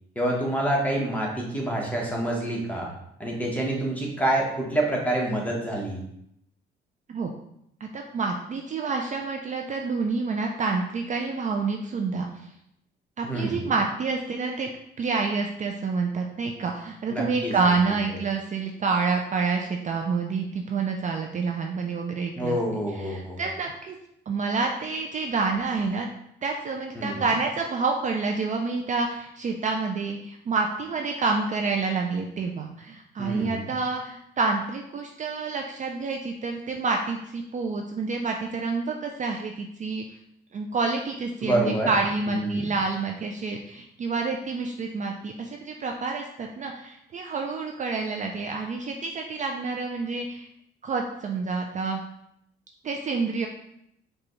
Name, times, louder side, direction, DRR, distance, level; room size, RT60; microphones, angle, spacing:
voice 1, 0.1-2.9 3.2-6.0 13.2-13.7 17.1-17.5 22.3-23.4 26.9-27.2 33.2-33.7 41.4-41.9 42.3-42.7, right 1 dB, 5° left, -2 dB, 1.1 m, -27 dB
voice 2, 7.8-12.5 13.2-14.7 15.0-22.6 23.0-23.9 24.3-26.1 26.4-40.0 40.5-50.5 50.8-52.0 52.8-53.5, right 4 dB, 40° right, 2 dB, 0.4 m, -28 dB
4.9 x 2.3 x 3.1 m, 0.76 s
cardioid pair, 90°, 20 cm